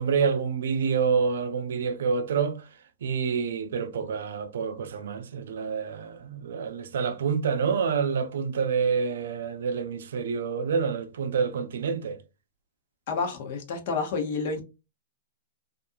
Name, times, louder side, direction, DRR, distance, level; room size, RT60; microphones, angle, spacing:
voice 1, 0.0-2.6 3.0-12.2, right 6 dB, 80° right, 0.5 m, -27 dB
voice 2, 13.1-14.6, left 4 dB, 55° left, 0.9 m, -29 dB
2.5 x 2.3 x 2.6 m
hypercardioid pair, 155°, 0 cm